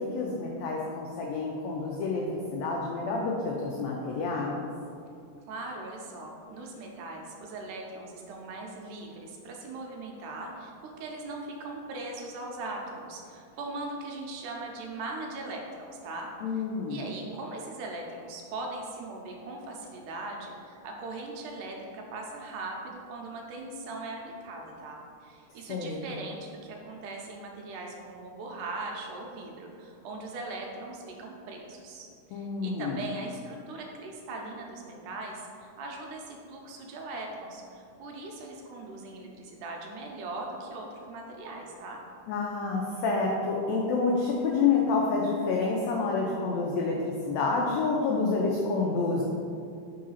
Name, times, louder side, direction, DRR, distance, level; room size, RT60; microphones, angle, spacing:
voice 1, 0.0-4.7 16.4-17.0 25.7-26.1 32.3-33.0 42.3-49.2, left 4 dB, 85° left, -2 dB, 1.5 m, -28 dB
voice 2, 5.5-24.2 24.4-42.0, right 2 dB, 80° right, 0 dB, 2.1 m, -40 dB
4.7 x 3.8 x 5.6 m, 2.4 s
omnidirectional pair, 3.8 m